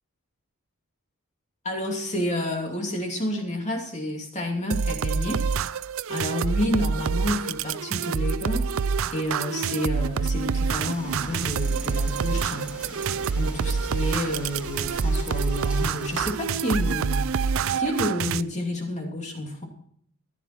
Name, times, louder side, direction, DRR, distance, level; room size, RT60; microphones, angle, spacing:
voice 1, 1.6-5.4 6.1-8.7 9.1-12.7 13.3-17.3 17.7-19.7, left 1 dB, 30° left, 1 dB, 2.6 m, -29 dB
sound 1, 4.7-18.4, right 5 dB, 60° right, 0.5 m, -27 dB
sound 2, 10.8-16.3, equal, 5° right, 4.4 m, -38 dB
15.0 x 11.5 x 4.4 m, 0.63 s
head